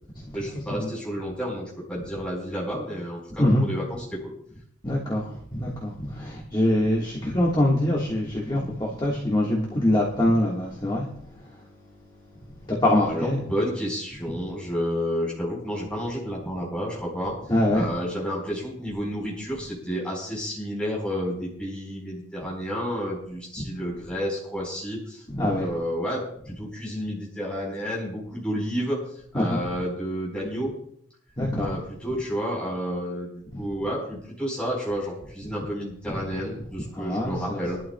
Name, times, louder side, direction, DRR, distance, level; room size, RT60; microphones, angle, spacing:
voice 1, 0.3-4.3 13.0-17.3 17.7-29.0 29.3-30.7 31.5-37.8, equal, 5° left, -4 dB, 4.3 m, -31 dB
voice 2, 4.8-11.5 12.7-13.4 17.5-17.9 25.3-25.7 29.3-29.6 31.4-31.7 33.5-33.7 36.1-36.2 36.9-37.6, left 1 dB, 20° left, -3 dB, 1.5 m, -24 dB
22.5 x 11.5 x 2.3 m, 0.69 s
head